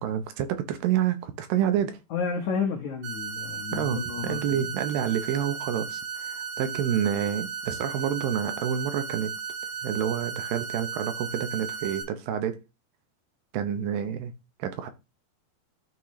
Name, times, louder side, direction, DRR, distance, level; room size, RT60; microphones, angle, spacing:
voice 1, 0.0-2.0 3.7-9.3 9.8-12.6 13.5-14.3 14.6-14.9, right 9 dB, 75° right, 2.2 m, -28 dB
voice 2, 2.1-4.7, left 5 dB, 85° left, 1.6 m, -31 dB
sound 1, 3.0-12.0, right 6 dB, 45° right, 4.6 m, -35 dB
12.5 x 4.3 x 3.1 m
omnidirectional pair, 5.0 m